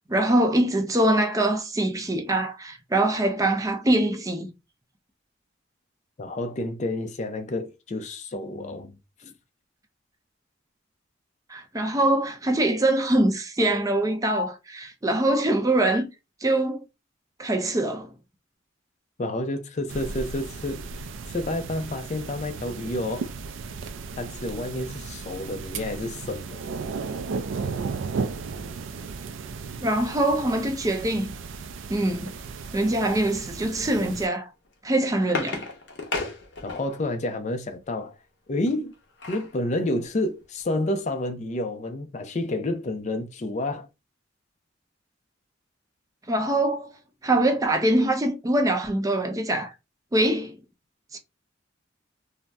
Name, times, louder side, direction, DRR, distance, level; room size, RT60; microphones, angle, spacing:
voice 1, 0.1-4.5 11.5-16.1 16.4-16.8 17.4-18.1 29.8-31.3 31.9-32.3 32.7-34.5 34.8-35.7 46.3-46.9 47.2-49.7 50.1-50.6 51.1-51.2, right 1 dB, 20° right, 0.5 m, -23 dB
voice 2, 6.2-8.9 19.2-20.8 21.3-23.3 24.2-26.6 36.6-38.1 38.5-38.9 39.3-43.9, left 1 dB, 35° left, 0.4 m, -29 dB
sound 1, 19.9-34.3, right 4 dB, 80° right, 0.4 m, -35 dB
sound 2, 34.6-37.1 38.7-39.6 40.0-40.1 40.4-40.6, left 3 dB, 70° left, 0.8 m, -34 dB
2.7 x 2.0 x 3.4 m
head